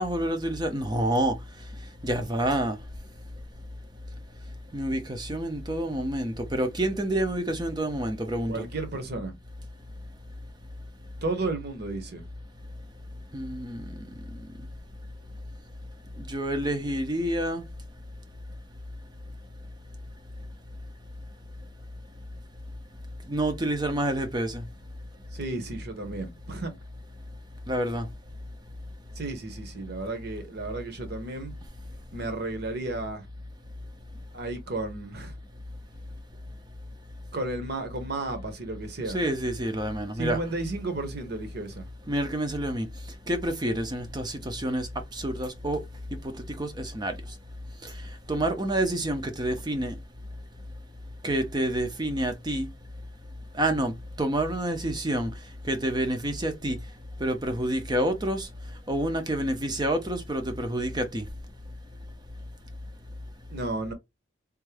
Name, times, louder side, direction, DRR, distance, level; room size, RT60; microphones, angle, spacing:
voice 1, 0.0-1.3 2.0-2.8 4.7-8.7 13.3-14.1 16.3-17.6 23.3-24.6 27.7-28.1 39.1-40.4 42.1-42.9 43.3-45.8 46.6-47.1 47.8-47.9 48.3-49.9 51.2-52.7 53.6-53.9 54.2-55.3 55.7-56.8 57.2-58.5 58.9-61.2, right 1 dB, 20° right, 0.5 m, -28 dB
voice 2, 8.5-9.4 11.2-12.3 25.3-26.7 29.2-31.5 32.1-33.3 34.3-35.3 37.3-39.2 40.2-41.9 63.5-63.9, right 2 dB, 50° right, 0.9 m, -33 dB
3.5 x 2.5 x 3.3 m
head